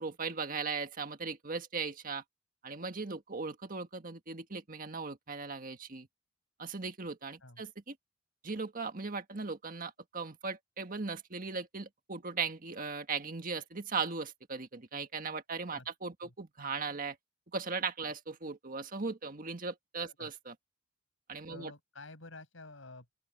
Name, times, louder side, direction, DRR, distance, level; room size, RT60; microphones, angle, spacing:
voice 1, 0.0-2.2 2.6-6.1 6.6-7.9 8.4-17.2 17.5-20.5 21.3-21.7, right 4 dB, 45° right, 1.7 m, -38 dB
voice 2, 21.5-23.1, left 2 dB, 75° left, 7.1 m, -50 dB
open air
head